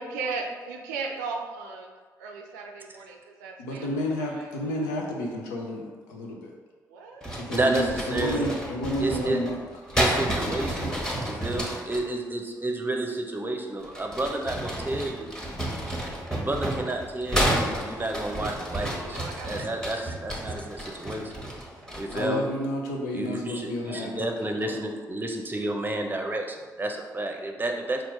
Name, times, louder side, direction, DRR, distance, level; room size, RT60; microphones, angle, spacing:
voice 1, 0.0-1.9 2.2-3.9 4.2-4.5 6.9-7.3 18.8-19.7, right 4 dB, 80° right, 2 dB, 0.4 m, -36 dB
voice 2, 3.6-6.5 7.5-9.6 22.1-24.7, left 1 dB, 80° left, 0 dB, 0.6 m, -31 dB
sound 1, 7.2-12.1 13.8-22.4, right 1 dB, 5° left, 1.2 m, -31 dB
voice 3, 7.5-8.5 9.0-9.4 9.9-15.3 16.3-21.3 22.0-22.5 23.1-28.0, right 2 dB, 20° right, 3 dB, 0.7 m, -30 dB
4.3 x 2.5 x 4.4 m, 1.4 s
hypercardioid pair, 40°, 10 cm